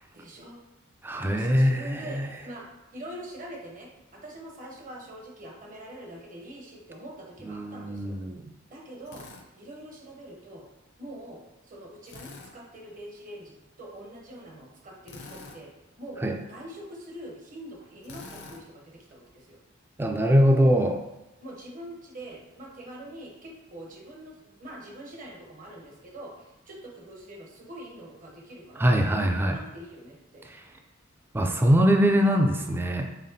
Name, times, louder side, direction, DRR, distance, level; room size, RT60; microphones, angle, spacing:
voice 1, 0.1-0.6 1.2-2.7 2.9-8.2 8.7-9.2 9.5-10.7 11.0-15.7 16.0-19.6 21.4-30.4, right 1 dB, 40° right, -1 dB, 0.7 m, -44 dB
voice 2, 1.0-2.3 7.5-8.4 16.2-16.4 20.0-21.0 28.8-29.6 31.3-33.1, equal, 10° right, 3 dB, 0.3 m, -22 dB
Drill, 9.1-9.4 12.0-12.5 15.0-15.6 18.0-18.6, left 3 dB, 60° left, 0.6 m, -44 dB
4.1 x 3.4 x 2.6 m, 0.95 s
head